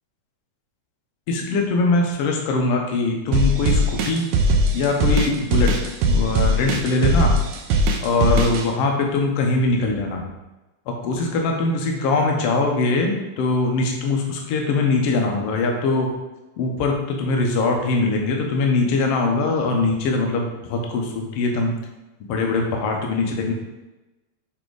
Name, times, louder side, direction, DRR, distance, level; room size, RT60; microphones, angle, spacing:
voice 1, 1.3-4.3 4.7-5.7 6.1-7.3 8.0-10.2 10.9-16.1 16.6-21.7 22.2-23.5, left 3 dB, 65° left, 1 dB, 1.6 m, -22 dB
sound 1, 3.3-8.6, right 1 dB, 80° right, 2.0 m, -19 dB
6.6 x 3.5 x 4.7 m, 1.1 s
omnidirectional pair, 3.7 m